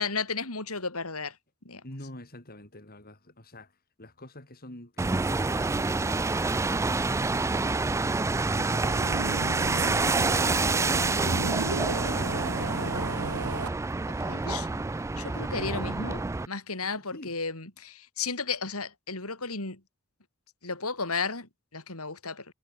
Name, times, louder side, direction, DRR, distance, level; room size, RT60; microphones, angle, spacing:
voice 1, 0.0-1.4 1.6-1.8 14.1-14.6 15.2-19.8 20.6-22.5, left 4 dB, 80° left, 5.8 m, -34 dB
voice 2, 1.8-3.7 4.0-6.3 10.1-11.1 11.6-13.6 14.1-14.8 16.8-17.3, left 1 dB, 45° left, 5.5 m, -47 dB
sound 1, 5.0-16.5, right 3 dB, 15° right, 0.3 m, -28 dB
sound 2, 8.7-13.7, right 3 dB, 80° right, 1.7 m, -33 dB
head